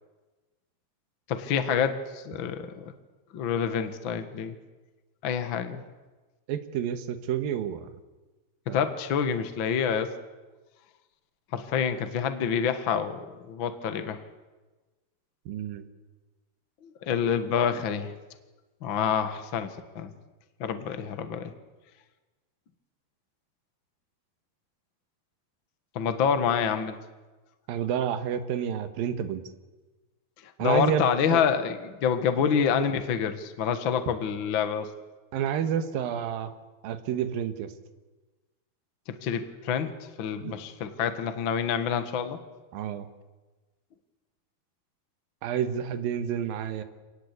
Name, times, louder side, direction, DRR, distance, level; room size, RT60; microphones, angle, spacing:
voice 1, 1.3-2.9 3.3-4.5 5.2-5.8 8.7-10.1 11.5-14.2 17.1-18.1 18.8-20.1 20.6-21.5 25.9-26.9 30.6-34.9 39.2-39.9 40.2-42.4, left 7 dB, 70° left, 9 dB, 1.1 m, -27 dB
voice 2, 6.5-7.9 8.7-8.8 15.5-15.8 27.7-29.4 30.6-31.4 32.3-32.4 35.3-36.5 36.8-37.7 40.4-40.6 42.7-43.1 45.4-46.8, right 9 dB, 70° right, 10 dB, 2.9 m, -29 dB
27.0 x 19.0 x 8.3 m, 1.2 s
omnidirectional pair, 4.7 m